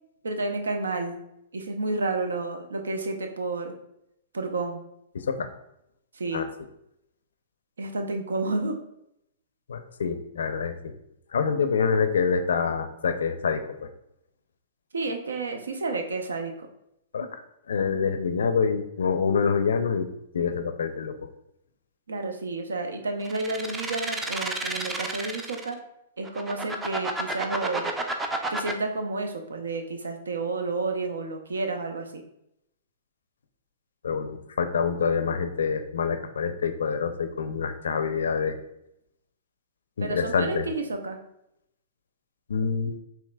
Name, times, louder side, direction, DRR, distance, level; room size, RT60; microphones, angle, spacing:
voice 1, 0.2-1.2 1.5-3.7 4.3-4.8 6.1-6.5 7.8-8.8 14.9-16.7 22.1-25.8 26.2-28.0 28.5-32.2 40.0-41.2, right 3 dB, 80° right, 5 dB, 0.5 m, -30 dB
voice 2, 5.1-5.5 6.3-6.5 9.7-10.9 11.3-13.6 17.1-17.3 17.7-20.1 20.3-21.1 34.0-38.6 40.0-40.6 42.5-42.9, left 6 dB, 75° left, 9 dB, 0.4 m, -26 dB
sound 1, 23.3-25.7 26.2-28.7, right 2 dB, 15° right, 0.4 m, -31 dB
4.9 x 2.9 x 2.2 m, 0.81 s
hypercardioid pair, 115°, 0 cm